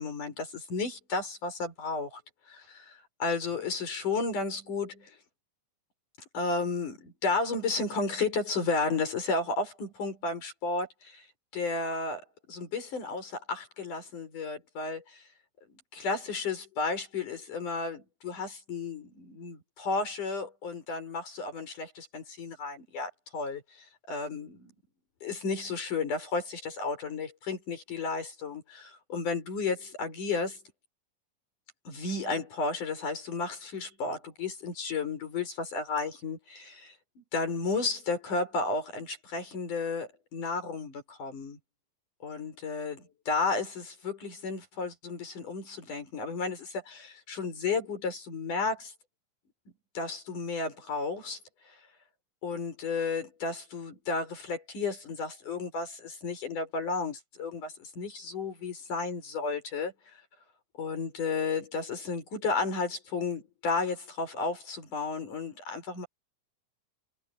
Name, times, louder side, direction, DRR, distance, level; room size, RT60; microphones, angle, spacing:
voice 1, 0.0-2.2 2.5-5.2 6.3-11.3 11.5-12.2 12.5-15.2 15.9-24.6 25.2-30.6 31.9-41.6 42.2-48.9 49.9-51.4 52.4-60.2 60.8-66.1, left 4 dB, 80° left, 7.7 m, -33 dB
omnidirectional pair, 3.5 m